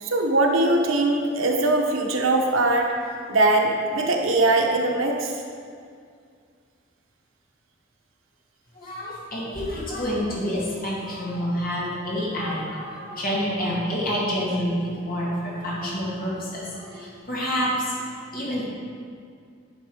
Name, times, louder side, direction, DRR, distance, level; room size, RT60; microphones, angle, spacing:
voice 1, 0.0-2.9 3.3-5.4, right 2 dB, 90° right, 2 dB, 1.1 m, -21 dB
voice 2, 8.8-18.7, equal, 45° left, -5 dB, 2.3 m, -28 dB
10.5 x 5.9 x 5.0 m, 2.2 s
head